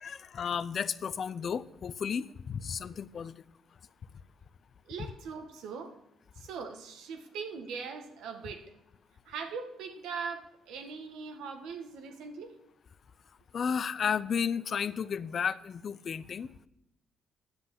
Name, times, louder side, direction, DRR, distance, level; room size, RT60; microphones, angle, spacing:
voice 1, 0.0-3.4 13.5-16.7, left 7 dB, 50° left, 16 dB, 0.5 m, -33 dB
voice 2, 4.9-6.0 6.3-8.7 9.2-12.5, right 5 dB, 90° right, 5 dB, 1.4 m, -41 dB
9.7 x 8.1 x 7.4 m, 0.86 s
cardioid pair, 90°, 0 cm